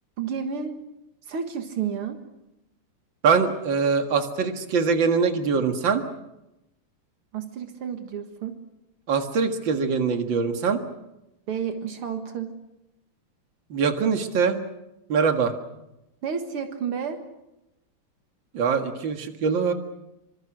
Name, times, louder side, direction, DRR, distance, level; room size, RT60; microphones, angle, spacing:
voice 1, 0.2-0.8 1.3-2.2 7.3-8.6 11.5-12.5 16.2-17.2, right 7 dB, 80° right, 6 dB, 2.5 m, -31 dB
voice 2, 3.2-6.0 9.1-10.8 13.7-14.6 15.1-15.5 18.5-19.7, right 5 dB, 60° right, 6 dB, 2.5 m, -23 dB
26.0 x 26.0 x 6.4 m, 0.90 s
omnidirectional pair, 2.4 m